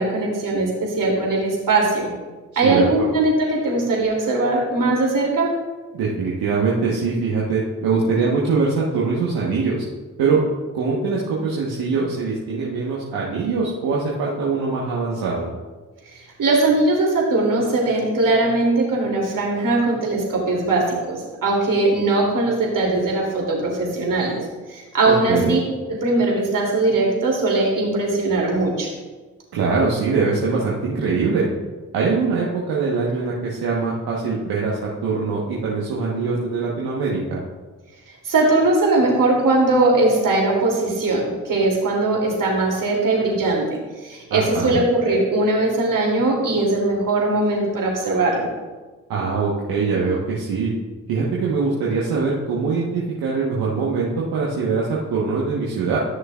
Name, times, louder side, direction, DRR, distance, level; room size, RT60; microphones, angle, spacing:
voice 1, 0.0-2.1 2.6-5.5 16.1-24.4 24.7-25.6 25.9-28.9 38.2-48.5, right 2 dB, 60° right, -2 dB, 2.8 m, -20 dB
voice 2, 2.6-3.1 5.9-9.8 10.2-10.4 10.7-15.5 25.1-25.6 29.5-31.5 31.9-37.4 44.3-44.8 49.1-50.7 51.1-56.0, right 4 dB, 80° right, -5 dB, 1.3 m, -22 dB
13.5 x 6.4 x 2.4 m, 1.3 s
hypercardioid pair, 40°, 36 cm